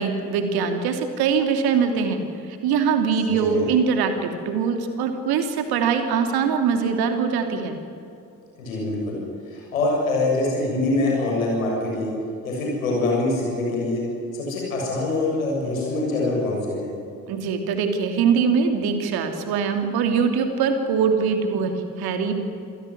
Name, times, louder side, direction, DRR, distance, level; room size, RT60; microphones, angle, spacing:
voice 1, 0.0-2.2 2.5-7.8 17.3-22.4, right 6 dB, 65° right, 6 dB, 2.9 m, -22 dB
voice 2, 3.3-3.7 8.6-9.2 9.5-12.1 12.4-14.0 14.3-16.9, left 2 dB, 85° left, -2 dB, 7.2 m, -24 dB
27.0 x 17.0 x 9.9 m, 2.6 s
figure-of-eight pair, 40°, 40 cm